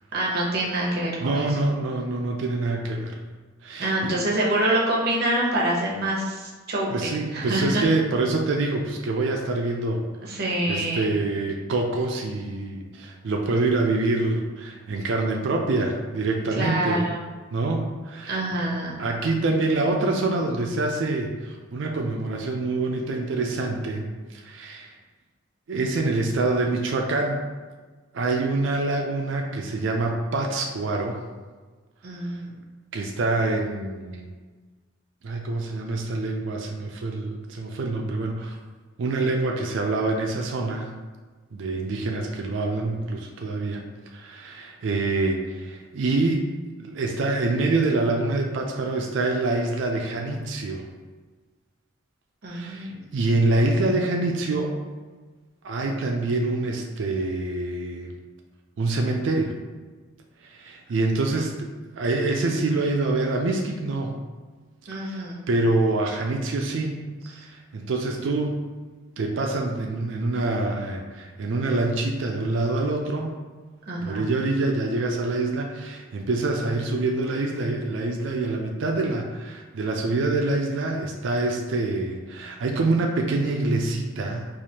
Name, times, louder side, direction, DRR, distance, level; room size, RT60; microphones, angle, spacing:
voice 1, 0.1-1.5 3.8-7.8 10.2-11.1 16.5-17.2 18.3-19.0 32.0-32.5 52.4-53.0 64.9-65.4 73.9-74.3, right 1 dB, 55° right, -4 dB, 0.8 m, -26 dB
voice 2, 1.2-3.1 3.6-4.2 6.9-10.4 10.7-17.0 17.5-18.6 19.0-24.0 24.3-24.9 25.7-27.5 28.1-31.2 32.2-32.4 32.9-34.3 35.2-38.6 39.0-40.9 41.5-46.4 46.8-50.9 52.5-54.7 55.6-58.1 58.8-59.6 60.4-61.7 62.0-64.2 64.9-67.0 67.3-68.6 69.2-73.4 74.0-84.5, right 2 dB, 70° right, 2 dB, 0.4 m, -26 dB
4.7 x 2.5 x 2.8 m, 1.4 s
head